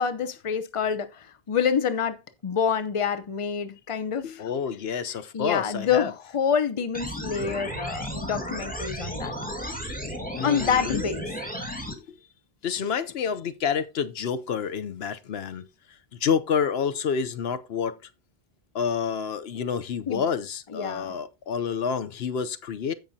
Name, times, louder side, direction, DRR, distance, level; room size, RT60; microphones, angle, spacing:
voice 1, 0.0-4.5 5.3-9.3 10.4-11.3 20.1-20.2 20.7-21.1, left 7 dB, 35° left, 0.8 m, -27 dB
voice 2, 4.2-6.1 9.7-11.0 11.9-12.2 12.6-15.7 16.1-18.0 18.7-22.9, left 6 dB, 75° left, 1.0 m, -29 dB
sound 1, 6.9-11.9, equal, 10° left, 1.7 m, -34 dB
16.0 x 5.7 x 2.7 m
omnidirectional pair, 1.0 m